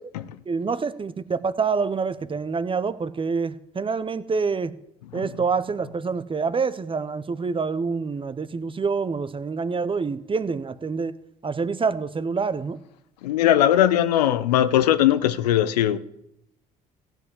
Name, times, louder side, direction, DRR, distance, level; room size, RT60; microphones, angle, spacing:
voice 1, 0.5-4.7 5.1-11.1 11.4-12.8, right 5 dB, 25° right, 0.8 m, -26 dB
voice 2, 5.0-5.5 13.2-16.0, left 12 dB, 90° left, 0.6 m, -20 dB
15.5 x 5.4 x 8.0 m
hypercardioid pair, 60°, 20 cm